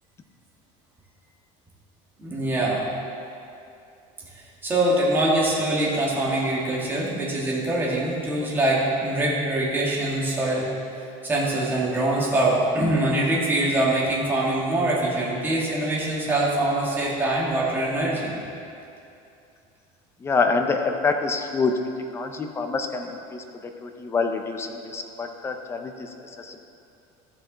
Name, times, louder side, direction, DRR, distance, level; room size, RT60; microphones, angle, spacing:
voice 1, 2.2-2.9 4.6-10.7 11.2-18.3, right 1 dB, 15° right, -5 dB, 1.7 m, -23 dB
voice 2, 20.2-21.8 22.1-26.6, left 4 dB, 15° left, 5 dB, 0.5 m, -27 dB
13.5 x 6.2 x 3.9 m, 2.6 s
cardioid pair, 160°, 15 cm